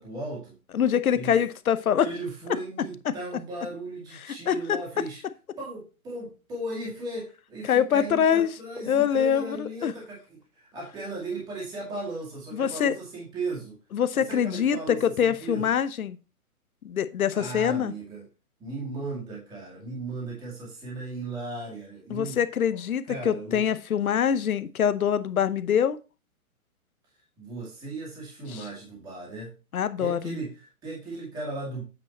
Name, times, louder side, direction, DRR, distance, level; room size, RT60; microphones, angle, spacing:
voice 1, 0.0-0.6 1.1-1.4 2.0-5.2 5.6-13.8 14.1-15.8 17.3-18.3 18.6-22.4 23.1-23.6 27.4-29.5 30.0-31.8, right 2 dB, 10° right, 2.1 m, -36 dB
voice 2, 0.7-2.1 3.0-3.1 4.2-4.8 7.6-8.5 8.9-9.9 12.5-12.9 13.9-16.2 16.8-17.9 22.1-26.0 28.5-28.6 29.7-30.4, left 8 dB, 75° left, 0.9 m, -24 dB
8.5 x 5.0 x 4.2 m
hypercardioid pair, 170°, 44 cm